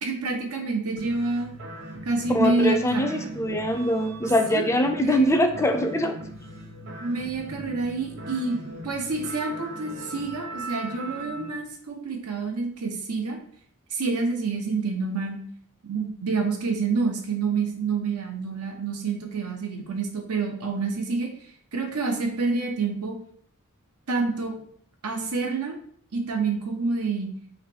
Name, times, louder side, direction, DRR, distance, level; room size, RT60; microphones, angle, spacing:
voice 1, 0.0-1.5 2.0-3.2 4.5-4.6 5.0-5.3 7.0-8.6 8.8-13.4 13.9-15.4 15.9-21.3 21.7-23.2 24.1-24.6 25.0-25.8 26.1-27.3, right 4 dB, 85° right, 2 dB, 0.9 m, -27 dB
sound 1, 1.0-11.5, right 1 dB, 60° right, 1.2 m, -39 dB
voice 2, 2.3-6.2, equal, 10° left, 5 dB, 0.4 m, -23 dB
3.2 x 3.0 x 4.5 m, 0.62 s
head